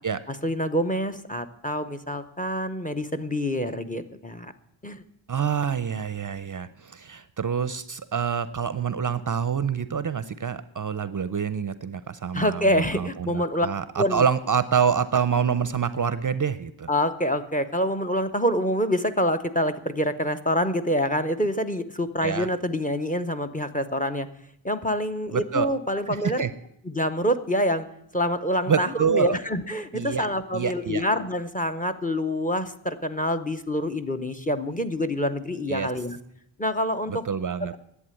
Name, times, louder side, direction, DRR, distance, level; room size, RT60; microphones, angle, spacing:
voice 1, 0.3-4.5 4.8-5.0 12.3-13.7 14.0-14.2 16.9-24.3 24.6-26.4 26.8-27.9 28.1-36.2 36.6-37.2, equal, 15° left, 11 dB, 0.7 m, -26 dB
voice 2, 5.3-16.9 22.2-22.5 25.3-25.7 26.1-26.5 28.7-29.4 29.9-30.3 30.5-31.0 35.7-35.9 37.1-37.7, right 7 dB, 40° right, 14 dB, 0.5 m, -26 dB
11.0 x 8.3 x 9.7 m, 0.74 s
wide cardioid pair, 140°, 49 cm